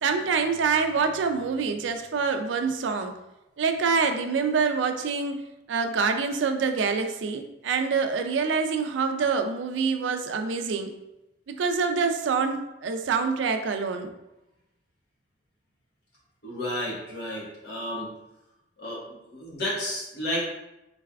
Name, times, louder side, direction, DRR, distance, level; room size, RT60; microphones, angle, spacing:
voice 1, 0.0-3.1 3.6-5.4 5.7-10.9 11.5-14.1, right 5 dB, 85° right, 6 dB, 0.4 m, -26 dB
voice 2, 16.4-18.1 18.8-20.4, left 1 dB, 60° left, -5 dB, 1.3 m, -32 dB
4.0 x 3.3 x 2.3 m, 0.93 s
head